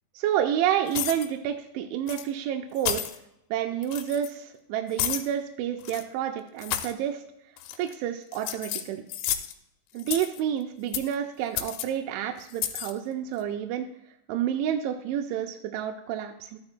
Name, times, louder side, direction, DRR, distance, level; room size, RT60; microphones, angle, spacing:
voice 1, 0.2-3.0 3.5-7.2 7.8-9.0 9.9-13.9 14.3-16.6, right 10 dB, 85° right, 3 dB, 3.0 m, -29 dB
sound 1, 0.9-1.3 2.1-2.2 2.8-3.2 3.8-4.3 5.0-5.3 5.8-6.0 6.6-6.9 7.6-7.9 8.3-9.5 10.0-10.4 10.9-11.1 11.6-11.8 12.5-12.9, left 11 dB, 80° left, 2.8 m, -31 dB
14.5 x 9.5 x 2.2 m, 0.81 s
omnidirectional pair, 5.5 m